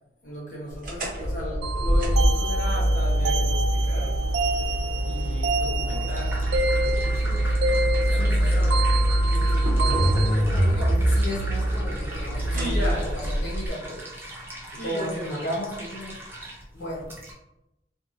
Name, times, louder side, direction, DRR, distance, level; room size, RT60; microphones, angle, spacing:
voice 1, 0.2-4.2 5.1-8.7 12.5-13.2 14.8-15.4, equal, 45° left, -6 dB, 1.0 m, -36 dB
sound 1, 0.8-13.7, right 1 dB, 50° right, 0.8 m, -24 dB
sound 2, 1.6-10.3, right 2 dB, 75° right, 0.3 m, -29 dB
sound 3, 5.7-17.3, right 1 dB, 15° right, 0.5 m, -40 dB
voice 2, 8.1-8.7 9.3-14.0 14.7-16.2 16.7-17.1, equal, 85° left, -5 dB, 0.8 m, -35 dB
2.7 x 2.6 x 2.6 m, 0.88 s
head